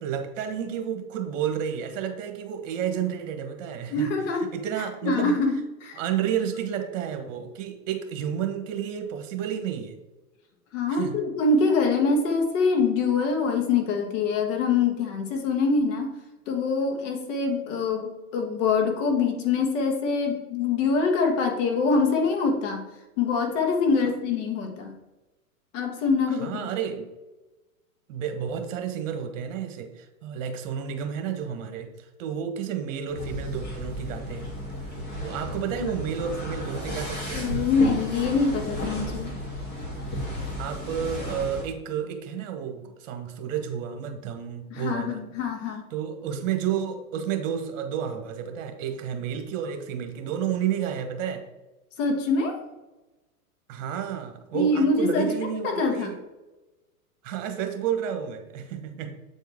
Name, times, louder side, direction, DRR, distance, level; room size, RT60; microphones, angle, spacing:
voice 1, 0.0-4.1 4.4-5.4 5.9-10.0 10.9-11.2 26.3-27.1 28.1-34.5 35.2-37.5 40.6-45.2 45.9-51.4 53.7-56.2 57.2-59.1, right 8 dB, 60° right, 6 dB, 1.3 m, -31 dB
voice 2, 3.9-4.5 5.0-6.0 10.7-16.1 16.5-22.9 23.2-24.9 25.7-26.7 35.8-35.9 37.3-39.4 44.7-45.9 52.0-52.6 54.5-55.3 55.6-56.1, left 4 dB, 55° left, 3 dB, 1.6 m, -24 dB
sound 1, 33.1-41.6, equal, 25° left, 2.4 m, -33 dB
8.0 x 4.5 x 3.6 m, 1.1 s
hypercardioid pair, 135°, 43 cm